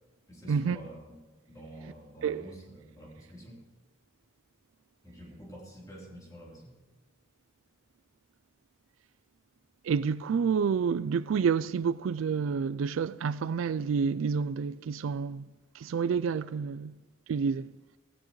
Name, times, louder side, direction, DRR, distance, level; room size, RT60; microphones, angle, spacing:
voice 1, 0.3-1.2 1.5-3.6 5.0-6.8, right 1 dB, 15° left, 3.6 m, -48 dB
voice 2, 9.8-15.5 15.8-16.9 17.3-17.7, right 6 dB, 80° right, 0.3 m, -29 dB
17.0 x 16.5 x 3.2 m
head